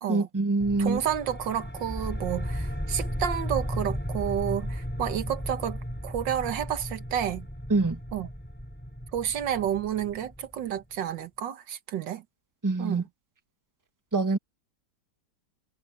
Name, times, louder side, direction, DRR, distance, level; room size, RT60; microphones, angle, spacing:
voice 1, 0.1-1.0 7.7-8.0 12.6-13.0 14.1-14.4, right 3 dB, 10° right, 1.3 m, -25 dB
sound 1, 0.6-10.8, equal, 5° left, 7.6 m, -35 dB
voice 2, 0.8-7.5 8.1-8.3 9.1-12.2 12.8-13.0, right 10 dB, 90° right, 1.9 m, -30 dB
omnidirectional pair, 1.9 m